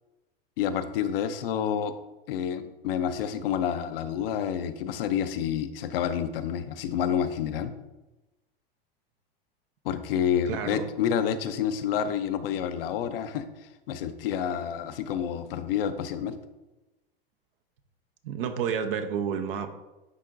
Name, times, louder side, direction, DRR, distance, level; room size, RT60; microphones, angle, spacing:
voice 1, 0.6-1.9 2.3-7.7 9.8-13.5 13.9-16.3, left 8 dB, 70° left, 10 dB, 0.7 m, -29 dB
voice 2, 10.5-10.9 18.2-19.7, right 7 dB, 70° right, 7 dB, 0.8 m, -30 dB
11.0 x 3.6 x 2.6 m, 1.0 s
hypercardioid pair, 100°, 30 cm